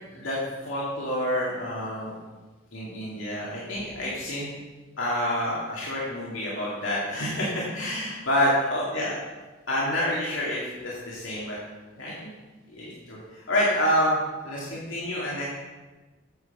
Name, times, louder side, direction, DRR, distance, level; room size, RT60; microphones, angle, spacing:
voice 1, 0.6-2.1 2.7-4.5 5.0-9.2 9.7-11.6 12.0-12.3 12.7-14.2 14.4-15.5, equal, 75° left, -6 dB, 2.4 m, -28 dB
9.4 x 6.8 x 6.7 m, 1.2 s
head